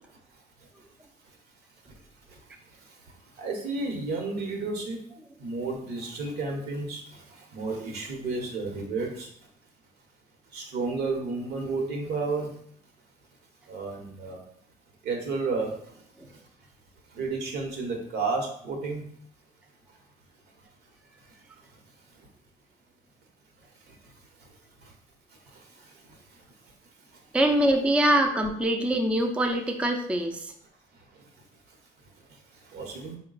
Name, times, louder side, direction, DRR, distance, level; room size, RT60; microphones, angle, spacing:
voice 1, 2.3-5.0 5.4-9.3 10.5-12.6 13.7-14.4 15.0-16.4 17.1-19.0 21.2-21.4 21.6-21.8 22.1-22.3 23.9-24.1 24.4-24.9 25.3-27.2 30.9-31.3 31.7-31.8 32.0-33.2, right 3 dB, 75° right, 2 dB, 1.0 m, -33 dB
voice 2, 27.3-30.5, right 1 dB, 5° right, 4 dB, 0.4 m, -24 dB
3.8 x 2.2 x 3.9 m, 0.65 s
cardioid pair, 110°, 17 cm